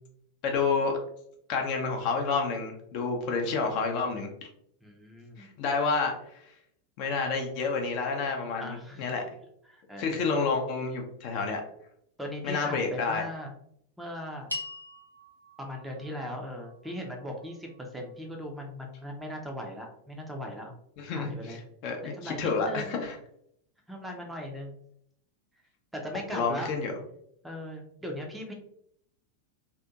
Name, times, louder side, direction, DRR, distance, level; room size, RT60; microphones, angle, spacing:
voice 1, 0.4-1.0 1.5-4.3 5.4-6.4 7.0-9.2 10.0-11.6 12.4-13.2 21.0-21.6 21.8-23.2 26.3-27.0, left 4 dB, 45° left, 2 dB, 0.5 m, -29 dB
voice 2, 4.8-5.5 8.6-9.1 9.7-10.3 12.2-13.5 14.0-14.5 15.6-20.7 21.1-21.6 22.0-23.0 23.9-24.8 25.9-26.7 27.4-28.5, equal, 5° right, 1 dB, 0.5 m, -39 dB
sound 1, 14.5-19.0, left 2 dB, 90° right, 0.5 m, -44 dB
2.7 x 2.4 x 2.3 m, 0.71 s
figure-of-eight pair, 90°, 0 cm